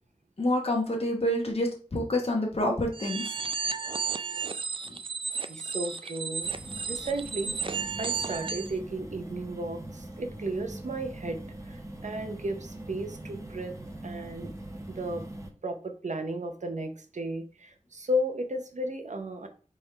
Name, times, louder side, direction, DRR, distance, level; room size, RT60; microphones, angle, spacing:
voice 1, 0.4-3.3, left 1 dB, 50° left, 0 dB, 1.0 m, -27 dB
sound 1, 2.9-8.7, right 5 dB, 45° right, 0.4 m, -33 dB
voice 2, 5.5-6.5 6.9-13.7 14.0-14.5 14.9-15.2 15.6-19.5, right 1 dB, 75° right, 5 dB, 0.7 m, -34 dB
sound 2, 6.4-15.5, right 1 dB, 25° right, 0.9 m, -42 dB
4.6 x 3.6 x 3.2 m, 0.39 s
wide cardioid pair, 55°, 13 cm